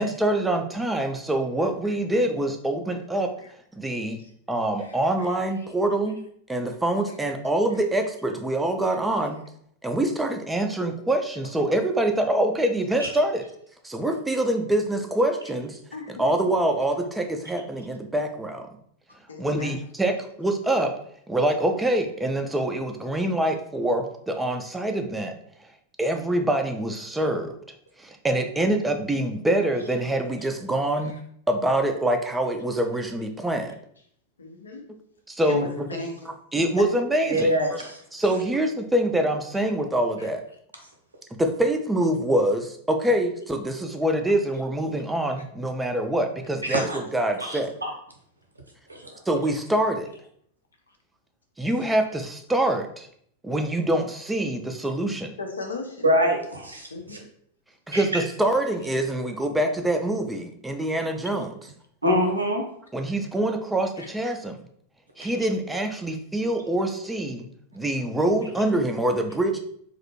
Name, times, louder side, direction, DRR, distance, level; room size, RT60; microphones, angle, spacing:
voice 1, 0.0-3.3 3.7-4.2 4.5-6.2 6.5-9.4 9.8-13.4 13.8-15.8 16.1-18.7 19.4-21.0 21.3-25.3 26.0-27.6 28.0-31.1 31.5-33.8 35.3-36.0 36.2-37.5 38.1-40.4 41.4-47.7 49.3-50.1 51.6-53.1 53.4-55.3 57.9-61.7 62.9-64.6 65.2-67.5 67.7-69.6, right 1 dB, 10° right, 5 dB, 0.3 m, -25 dB
voice 2, 15.9-16.2 19.3-19.7 34.4-34.8 35.4-36.1 55.4-56.0 56.9-57.2 64.0-64.1, left 3 dB, 75° left, 3 dB, 0.4 m, -36 dB
voice 3, 37.3-38.0 46.7-47.0 47.4-47.9 48.9-49.1 56.0-57.2 57.9-58.0 62.0-62.6 65.2-65.3, equal, 80° right, 1 dB, 0.6 m, -25 dB
2.4 x 2.0 x 2.8 m, 0.66 s
figure-of-eight pair, 90°, 0 cm